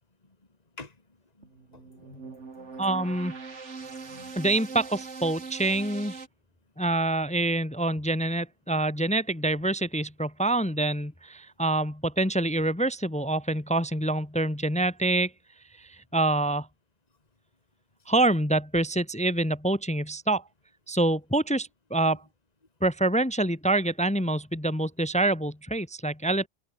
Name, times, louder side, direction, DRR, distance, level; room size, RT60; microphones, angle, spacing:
voice 1, 1.4-3.0 4.0-4.4 22.1-22.2, left 3 dB, 35° left, 2.7 m, -48 dB
sound 1, 1.4-6.3, right 4 dB, 75° right, 2.5 m, -41 dB
voice 2, 2.8-3.3 4.4-6.1 6.8-15.3 15.8-16.7 18.1-20.4 20.9-22.2 22.8-26.5, right 2 dB, 5° left, 0.7 m, -26 dB
omnidirectional pair, 1.2 m